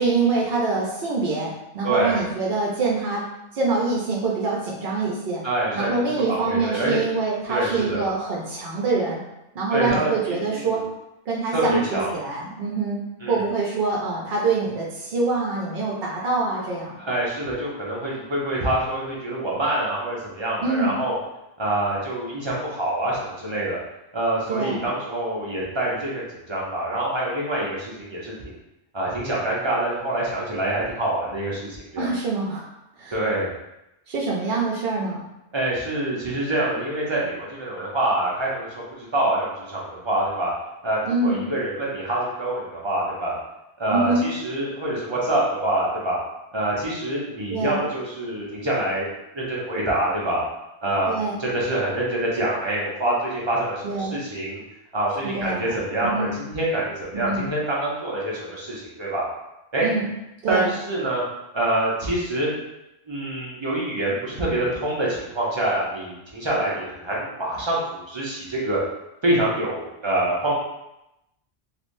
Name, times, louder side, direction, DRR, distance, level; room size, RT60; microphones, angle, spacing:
voice 1, 0.0-3.3 3.5-5.4 5.7-9.2 9.5-10.8 11.3-17.0 20.6-21.0 24.5-24.9 32.0-32.6 33.0-33.2 34.1-35.2 41.0-41.4 43.9-44.3 47.5-47.8 51.1-51.3 53.8-54.1 55.3-55.8 56.0-56.3 57.1-57.5 59.8-60.1 60.4-60.7, right 3 dB, 60° right, -4 dB, 0.8 m, -25 dB
voice 2, 1.8-2.2 5.4-7.0 7.5-8.0 9.7-10.8 11.5-12.1 13.2-13.4 17.0-21.1 21.6-23.8 24.1-28.6 28.9-32.1 33.1-33.5 35.5-40.5 40.8-43.3 43.8-46.2 46.5-49.1 49.3-50.4 50.8-54.6 54.9-59.2 59.7-59.9 60.5-61.2 61.5-62.5 63.1-68.8 69.2-70.5, right 1 dB, 30° right, -5 dB, 0.7 m, -26 dB
3.3 x 2.5 x 2.6 m, 0.90 s
omnidirectional pair, 1.1 m